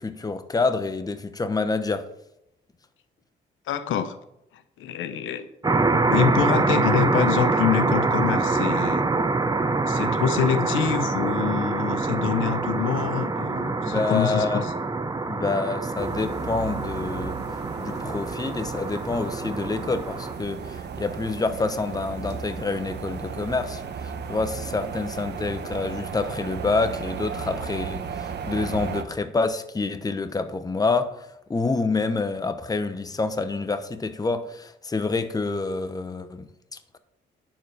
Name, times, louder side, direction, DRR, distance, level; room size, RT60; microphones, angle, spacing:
voice 1, 0.0-2.0 13.8-14.6 15.3-17.4 17.8-37.0, left 3 dB, 20° left, 0.9 m, -27 dB
voice 2, 3.7-4.2 4.8-5.8 6.1-9.0 9.9-14.7, left 8 dB, 80° left, 0.9 m, -26 dB
sound 1, 5.6-20.3, right 3 dB, 20° right, 0.8 m, -25 dB
sound 2, 15.9-29.0, right 6 dB, 60° right, 1.1 m, -35 dB
10.0 x 7.4 x 4.9 m
cardioid pair, 90°, 20 cm